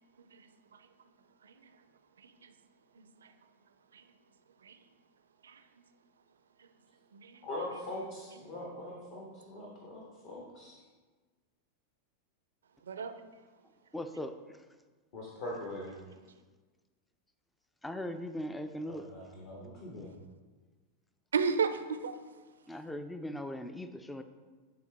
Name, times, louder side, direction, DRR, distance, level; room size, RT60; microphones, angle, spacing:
voice 1, 2.2-2.5 3.2-3.3 3.9-4.0 4.6-4.8 5.4-5.6 7.1-7.5 12.9-13.1 21.3-22.2, right 5 dB, 65° right, 0.4 m, -33 dB
voice 2, 7.4-10.8 15.1-15.9 18.9-20.1, left 1 dB, 50° left, 1.3 m, -42 dB
voice 3, 13.9-14.4 17.8-19.0 22.7-24.2, left 1 dB, 5° left, 0.4 m, -39 dB
10.0 x 3.9 x 3.3 m
figure-of-eight pair, 90°, 0 cm